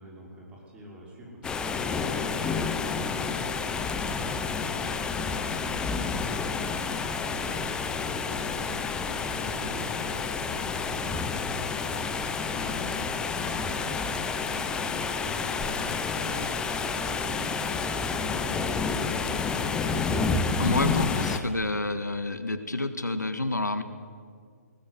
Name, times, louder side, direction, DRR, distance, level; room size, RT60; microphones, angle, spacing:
voice 1, 0.0-11.2 11.6-13.8 14.2-16.4 16.9-19.3, right 1 dB, 10° right, -2 dB, 5.8 m, -46 dB
sound 1, 1.4-21.4, left 5 dB, 10° left, 1.1 m, -29 dB
voice 2, 20.6-23.8, left 2 dB, 85° left, 10 dB, 1.9 m, -28 dB
20.0 x 19.5 x 8.4 m, 2.1 s
figure-of-eight pair, 140°, 9 cm